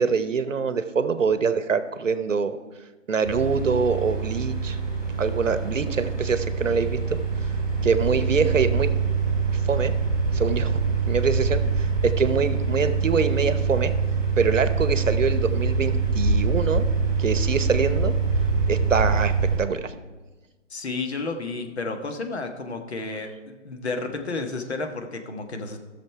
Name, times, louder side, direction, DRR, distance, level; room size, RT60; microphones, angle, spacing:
voice 1, 0.0-2.6 3.1-4.8 5.2-7.0 7.8-8.9 9.7-9.9 10.3-10.8 11.1-13.9 14.4-16.8 17.2-18.1 18.7-19.3 19.6-19.9, right 5 dB, 75° right, 12 dB, 0.9 m, -24 dB
sound 1, 3.2-19.6, right 4 dB, 10° left, 3.7 m, -24 dB
voice 2, 20.7-25.8, left 3 dB, 55° left, 5 dB, 1.4 m, -32 dB
14.5 x 6.6 x 4.7 m, 1.3 s
figure-of-eight pair, 160°, 39 cm